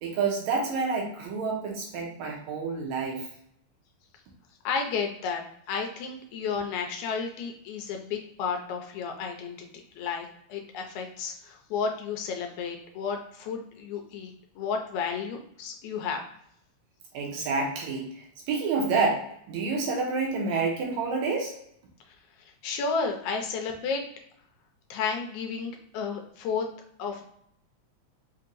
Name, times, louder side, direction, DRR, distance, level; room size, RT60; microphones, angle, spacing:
voice 1, 0.0-3.3 17.1-21.5, right 4 dB, 75° right, 0 dB, 2.0 m, -28 dB
voice 2, 4.7-9.6 10.0-16.2 22.6-24.0 24.9-26.7 27.0-27.2, left 5 dB, 80° left, 3 dB, 1.9 m, -32 dB
5.2 x 2.8 x 2.5 m, 0.71 s
omnidirectional pair, 3.5 m